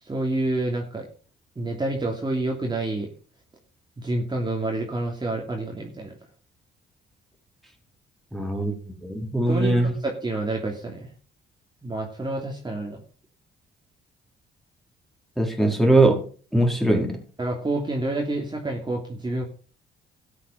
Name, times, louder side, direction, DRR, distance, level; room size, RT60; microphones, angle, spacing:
voice 1, 0.1-1.1 1.6-3.1 4.0-6.2 9.5-11.1 11.8-13.0 17.4-19.4, right 2 dB, 20° right, 3.0 m, -28 dB
voice 2, 8.3-8.7 9.0-9.9 15.4-16.2 16.5-17.2, right 2 dB, ahead, 4.2 m, -21 dB
13.5 x 8.5 x 5.4 m
cardioid pair, 90°, 20 cm